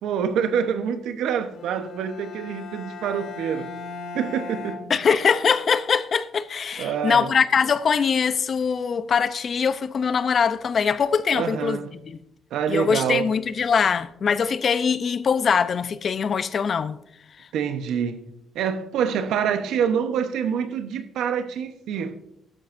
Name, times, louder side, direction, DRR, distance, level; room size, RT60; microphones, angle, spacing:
voice 1, 0.0-3.7 4.1-4.8 6.8-7.3 11.3-11.9 12.5-13.3 17.5-18.2 18.5-22.1, right 7 dB, 80° right, 0.9 m, -26 dB
Bowed string instrument, 1.5-5.6, left 4 dB, 70° left, 1.1 m, -39 dB
voice 2, 4.9-12.2 12.7-17.0 17.4-17.5, left 6 dB, 50° left, 0.6 m, -22 dB
12.5 x 11.5 x 2.6 m
cardioid pair, 90°, 0 cm